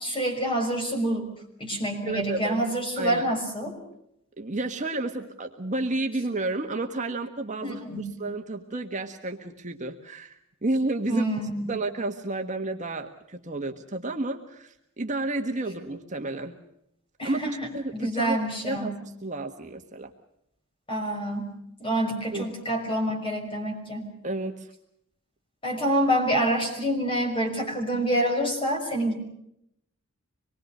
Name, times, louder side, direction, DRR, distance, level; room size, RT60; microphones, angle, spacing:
voice 1, 0.0-3.8 7.6-8.1 11.1-11.7 17.2-17.5 17.9-18.9 20.9-21.5 21.8-24.1 25.6-29.2, right 1 dB, 25° left, 3 dB, 6.1 m, -27 dB
voice 2, 2.0-2.6 3.0-3.3 4.4-11.2 11.7-16.6 17.2-17.4 17.7-18.4 18.6-19.0 19.2-20.1 22.3-22.5 24.2-24.7, right 2 dB, 35° right, 4 dB, 1.5 m, -31 dB
25.5 x 22.0 x 6.6 m, 0.77 s
head